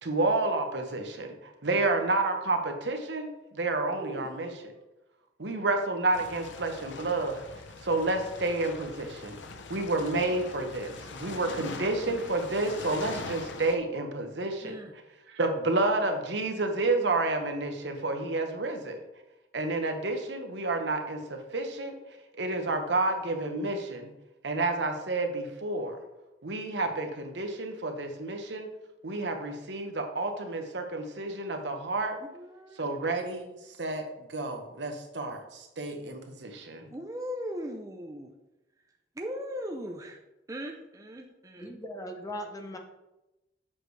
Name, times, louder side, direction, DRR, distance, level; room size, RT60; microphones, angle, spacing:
voice 1, 0.0-1.3 1.6-4.5 5.4-7.4 7.8-9.4 9.7-14.8 15.3-19.0 19.5-21.9 22.3-24.1 24.4-26.0 26.4-28.7 29.0-32.2 32.8-34.0 34.3-36.9, right 2 dB, 75° right, 5 dB, 1.0 m, -30 dB
voice 2, 4.0-4.3 14.6-14.9 32.3-33.0 36.9-38.3 39.2-40.2 40.5-41.7, equal, 20° right, 2 dB, 0.5 m, -38 dB
sound 1, 6.1-13.8, left 4 dB, 90° left, 0.7 m, -42 dB
voice 3, 41.6-42.8, equal, 20° left, 5 dB, 0.8 m, -39 dB
7.5 x 6.4 x 3.3 m, 0.98 s
head